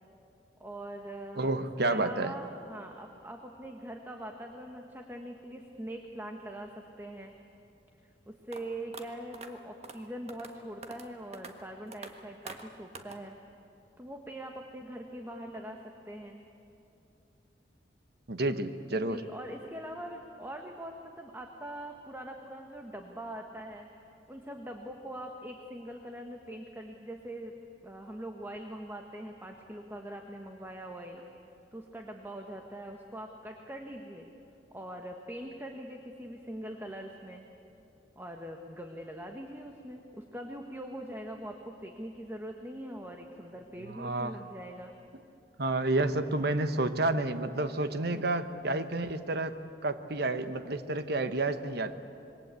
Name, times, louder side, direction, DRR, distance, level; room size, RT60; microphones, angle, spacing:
voice 1, 0.6-1.5 1.8-7.3 8.0-13.3 14.0-16.4 19.0-23.9 24.3-27.5 27.8-31.2 31.7-34.3 34.7-37.5 38.2-45.0 48.1-48.3, right 1 dB, 10° right, 3 dB, 1.3 m, -42 dB
voice 2, 1.4-2.3 18.3-19.2 43.9-44.4 45.6-52.0, right 2 dB, 60° right, 10 dB, 1.2 m, -30 dB
sound 1, 8.5-8.6 8.9-9.0 9.3-9.5 9.8-10.0 10.3-10.5 10.8-11.1 11.3-11.5 11.9-12.1 12.5-12.6 12.9-13.2, right 4 dB, 35° right, 1.5 m, -44 dB
26.5 x 22.5 x 8.4 m, 2.8 s
head